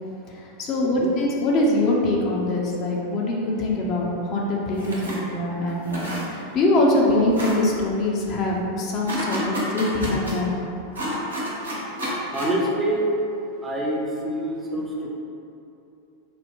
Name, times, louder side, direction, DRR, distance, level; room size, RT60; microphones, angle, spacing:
voice 1, 0.4-10.5, left 1 dB, 35° left, -3 dB, 0.6 m, -23 dB
sound 1, 4.8-5.2 5.7-6.6 6.9-7.0 7.3-7.6 9.1-10.3 10.9-12.5, equal, 75° right, 0.9 m, -30 dB
voice 2, 12.3-13.1 13.6-15.1, right 1 dB, 15° right, -3 dB, 0.5 m, -26 dB
4.1 x 2.2 x 3.5 m, 2.8 s
figure-of-eight pair, 90°, 0 cm